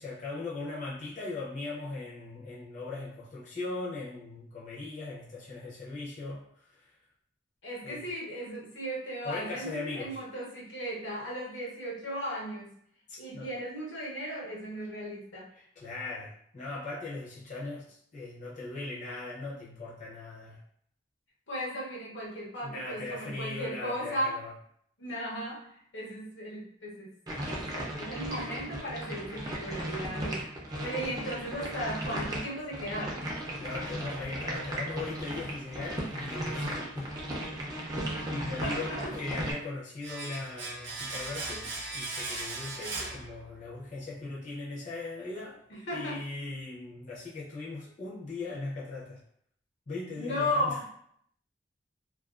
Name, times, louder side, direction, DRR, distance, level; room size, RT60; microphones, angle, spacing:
voice 1, 0.0-7.0 7.8-8.0 9.2-10.2 13.1-13.5 15.5-20.6 22.6-24.5 33.6-37.1 38.3-45.6 45.9-49.2 49.9-50.8, left 3 dB, 40° left, -7 dB, 0.5 m, -39 dB
voice 2, 7.6-12.7 13.2-15.5 21.5-24.4 25.0-27.1 27.5-30.4 30.8-33.2 38.6-39.1 45.7-46.2 50.2-50.9, equal, 80° left, -4 dB, 0.8 m, -36 dB
sound 1, 27.3-39.5, right 1 dB, 20° right, 0.4 m, -36 dB
Domestic sounds home sounds, 40.0-43.8 44.1-44.2, right 2 dB, 75° right, 0.6 m, -38 dB
2.4 x 2.2 x 2.3 m, 0.67 s
head